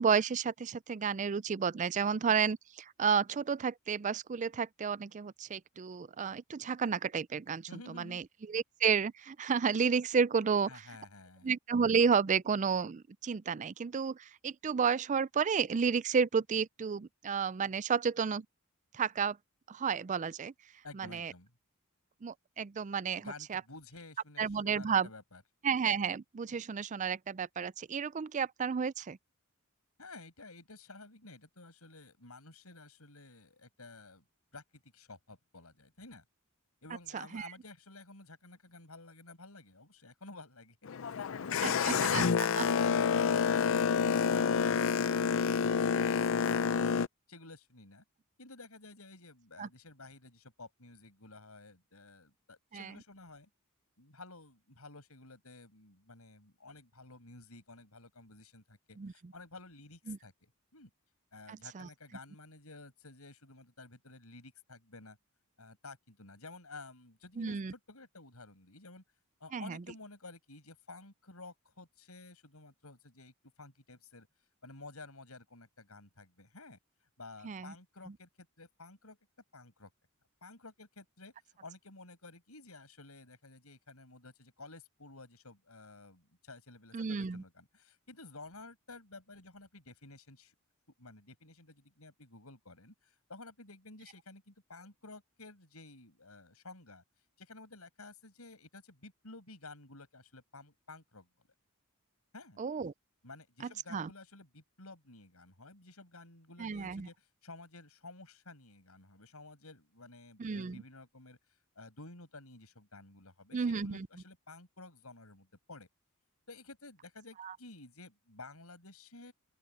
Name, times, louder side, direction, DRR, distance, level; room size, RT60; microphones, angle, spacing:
voice 1, 0.0-10.7 11.4-18.5 18.9-19.4 19.7-20.5 20.9-21.3 22.2-23.2 23.5-23.6 24.4-25.1 25.6-29.2 37.1-37.5 41.6-42.2 42.6-42.7 49.6-49.7 52.7-52.9 59.0-59.1 60.1-60.2 61.5-61.9 67.4-67.7 69.5-69.8 77.4-77.7 86.9-87.4 102.6-102.9 103.9-104.1 106.6-107.1 110.4-110.8 113.5-114.1, right 6 dB, 35° right, 0.4 m, -31 dB
voice 2, 7.7-8.2 10.7-11.5 20.8-21.5 23.2-25.4 30.0-34.2 34.5-36.2 36.8-40.8 47.3-48.0 48.4-53.5 54.0-60.9 61.3-65.2 65.6-69.0 69.4-74.3 74.6-76.8 77.2-79.2 79.5-79.9 80.4-90.5 91.0-97.0 97.4-101.5 102.3-102.6 103.2-115.9 116.5-119.3, left 3 dB, 90° left, 6.6 m, -52 dB
Boat Water vehicle, 40.9-47.1, left 6 dB, 65° left, 0.5 m, -28 dB
open air
head